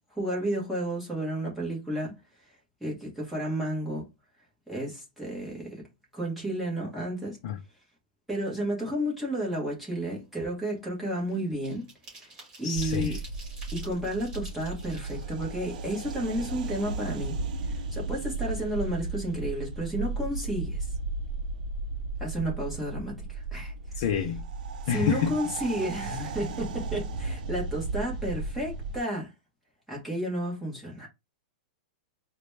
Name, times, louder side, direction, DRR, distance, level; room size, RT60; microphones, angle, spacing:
voice 1, 0.1-2.2 2.8-4.1 4.7-5.8 6.1-7.4 8.3-11.8 12.6-13.2 13.7-20.9 22.2-24.0 24.9-29.3 29.9-31.1, right 1 dB, ahead, 1.1 m, -32 dB
sound 1, 9.6-9.8 10.2-16.6 17.0-17.1 17.4-18.3 18.6-18.8 19.1-19.4, right 2 dB, 25° right, 1.9 m, -50 dB
voice 2, 12.6-13.2 24.0-24.4 24.9-25.4, left 8 dB, 40° left, 0.5 m, -28 dB
sound 2, 12.7-29.0, right 3 dB, 65° right, 0.6 m, -35 dB
3.9 x 2.2 x 3.1 m
supercardioid pair, 175°, 5 cm